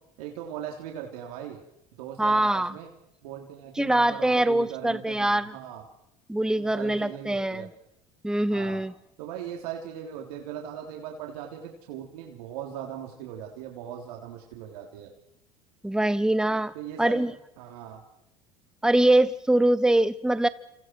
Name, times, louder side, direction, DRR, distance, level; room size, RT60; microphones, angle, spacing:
voice 1, 0.2-1.6 2.0-2.9 3.2-5.8 6.6-7.7 8.5-8.8 9.2-15.1 16.7-18.0, right 9 dB, 80° right, 1 dB, 3.6 m, -39 dB
voice 2, 2.2-2.8 3.8-5.5 6.3-7.7 8.2-8.9 15.8-17.3 18.8-20.5, right 1 dB, 5° right, 15 dB, 1.1 m, -23 dB
28.5 x 28.0 x 4.7 m, 0.80 s
hypercardioid pair, 85°, 19 cm